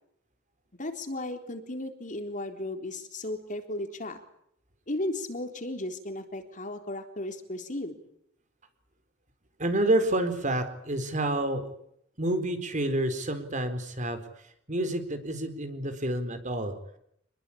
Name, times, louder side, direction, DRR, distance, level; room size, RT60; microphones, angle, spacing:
voice 1, 0.8-4.2 4.9-8.0, left 1 dB, 40° left, 6 dB, 3.8 m, -35 dB
voice 2, 9.6-11.7 12.2-14.2 14.7-16.7, right 1 dB, 40° right, 9 dB, 4.2 m, -28 dB
27.5 x 21.0 x 8.7 m, 0.72 s
head